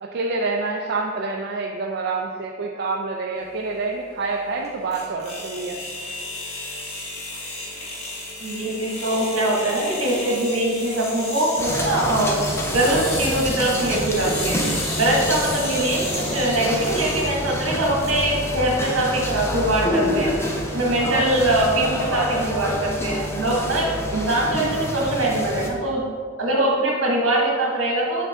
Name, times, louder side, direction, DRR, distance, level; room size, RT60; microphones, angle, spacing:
voice 1, 0.0-5.8, right 3 dB, 55° right, 1 dB, 0.4 m, -27 dB
sound 1, 3.4-18.1, left 2 dB, 30° left, 1.2 m, -33 dB
voice 2, 8.4-12.3 12.7-14.6 15.0-20.3 20.7-26.0 26.4-28.2, right 1 dB, 75° right, -2 dB, 1.6 m, -22 dB
sound 2, 11.6-25.7, equal, 15° left, 0.6 m, -28 dB
5.8 x 5.4 x 3.6 m, 2.1 s
head